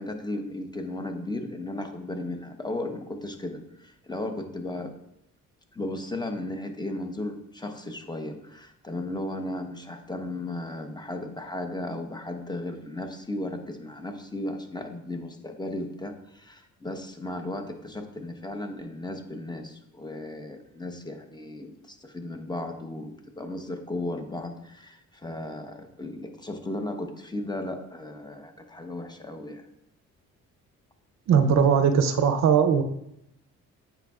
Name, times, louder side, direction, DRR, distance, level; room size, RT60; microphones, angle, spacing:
voice 1, 0.0-4.9 5.7-29.6, left 1 dB, 15° left, 5 dB, 0.9 m, -35 dB
voice 2, 31.3-32.8, right 7 dB, 60° right, 8 dB, 0.6 m, -20 dB
8.8 x 5.2 x 2.4 m, 0.78 s
cardioid pair, 90°, 30 cm